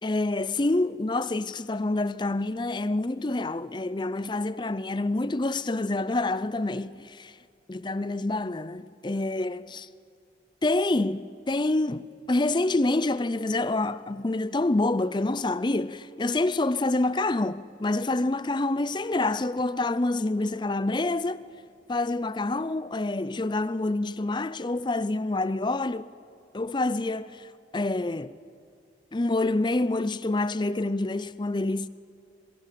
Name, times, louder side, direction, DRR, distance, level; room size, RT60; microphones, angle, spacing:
voice 1, 0.0-6.9 7.7-9.9 10.6-21.4 21.9-26.1 26.5-28.3 29.1-31.9, left 2 dB, 25° left, 0.5 m, -27 dB
27.0 x 22.5 x 7.6 m
head